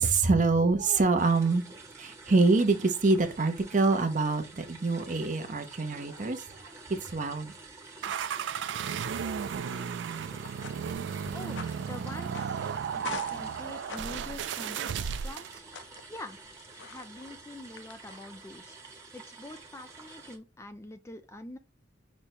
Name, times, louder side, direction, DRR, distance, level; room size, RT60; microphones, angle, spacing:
voice 1, 0.0-1.6 2.0-7.5 8.7-9.3, right 3 dB, 45° right, 0.6 m, -26 dB
sound 1, 1.2-20.4, right 3 dB, 15° right, 0.9 m, -49 dB
sound 2, 8.0-15.6, right 7 dB, 80° right, 0.3 m, -34 dB
sound 3, 10.1-18.5, left 5 dB, 85° left, 0.6 m, -47 dB
voice 2, 11.3-12.7 12.9-15.7 16.1-16.4 16.8-18.8 19.1-21.6, left 1 dB, 15° left, 0.4 m, -45 dB
5.2 x 2.1 x 4.4 m
head